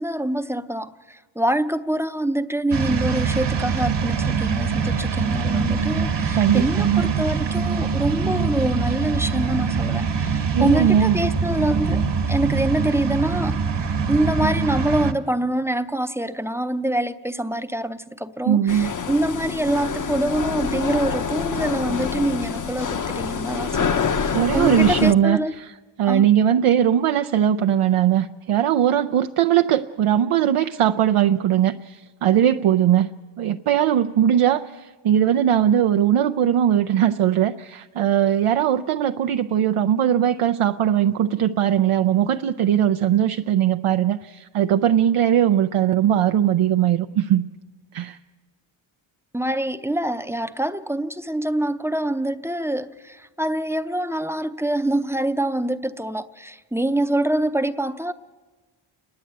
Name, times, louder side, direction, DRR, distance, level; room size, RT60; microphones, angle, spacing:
voice 1, 0.0-12.0 12.3-25.6 26.0-26.3 49.3-58.1, right 1 dB, 5° right, 0.6 m, -25 dB
sound 1, 2.7-15.1, right 5 dB, 55° right, 1.5 m, -23 dB
voice 2, 6.4-7.1 10.5-11.2 18.4-18.9 24.3-25.7 26.0-33.1 33.4-47.4 47.9-48.2, right 10 dB, 80° right, 0.7 m, -20 dB
sound 2, 18.7-25.1, left 6 dB, 40° left, 0.7 m, -26 dB
29.5 x 10.5 x 8.7 m
wide cardioid pair, 105°, 49 cm